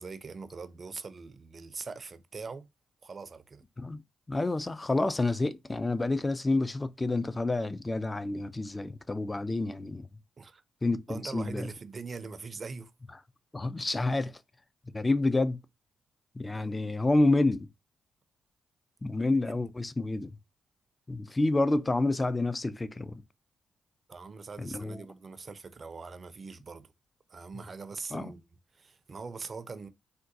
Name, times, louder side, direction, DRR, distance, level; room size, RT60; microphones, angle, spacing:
voice 1, 0.0-2.7 3.0-3.6 10.4-10.6 11.1-12.9 16.5-16.7 19.1-19.6 24.1-26.9 27.3-28.4 28.7-29.9, right 4 dB, 45° right, 0.4 m, -42 dB
voice 2, 4.3-10.1 10.8-11.7 13.5-14.4 14.9-15.6 16.3-17.7 19.0-20.3 21.1-23.2 24.6-25.0 28.1-28.3, left 2 dB, 25° left, 0.4 m, -28 dB
3.6 x 2.2 x 2.6 m
supercardioid pair, 50°, 0 cm